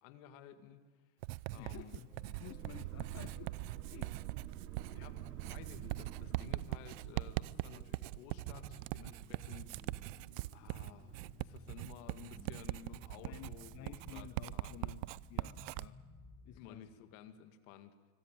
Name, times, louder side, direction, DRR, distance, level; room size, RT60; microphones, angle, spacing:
voice 1, 0.0-1.1 1.5-1.9 4.9-9.8 10.5-14.9 16.5-17.9, left 9 dB, 60° left, 9 dB, 2.2 m, -55 dB
Writing, 1.2-15.9, right 20 dB, 55° right, 0.6 m, -42 dB
voice 2, 1.6-3.5 3.9-4.1 13.2-15.0 15.3-16.0 16.4-16.9, left 13 dB, 35° left, 12 dB, 0.9 m, -52 dB
sound 1, 1.8-16.8, left 2 dB, 10° left, 5.6 m, -58 dB
sound 2, 2.4-7.3, right 15 dB, 75° right, 1.4 m, -48 dB
24.5 x 18.0 x 9.1 m, 1.4 s
hypercardioid pair, 110°, 44 cm